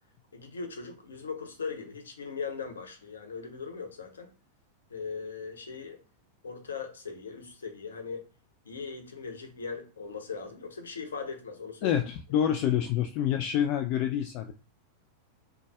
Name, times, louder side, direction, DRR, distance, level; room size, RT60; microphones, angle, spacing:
voice 1, 0.3-4.3 4.9-6.0 6.4-8.2 8.6-12.0, left 5 dB, 70° left, 0.8 m, -39 dB
voice 2, 11.8-14.5, left 10 dB, 45° left, 0.3 m, -27 dB
3.9 x 2.2 x 2.3 m
figure-of-eight pair, 90°, 0 cm